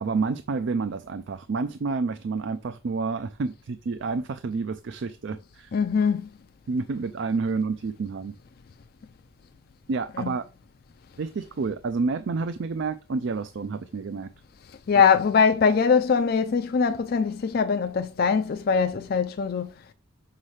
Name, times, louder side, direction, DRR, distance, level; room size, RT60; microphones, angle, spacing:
voice 1, 0.0-5.7 6.7-8.3 9.9-10.4 11.2-14.3 14.9-15.0, right 4 dB, 55° right, 0.4 m, -29 dB
voice 2, 5.7-6.3 10.2-10.3 14.7-19.7, left 6 dB, 45° left, 0.4 m, -22 dB
6.4 x 5.6 x 3.2 m
head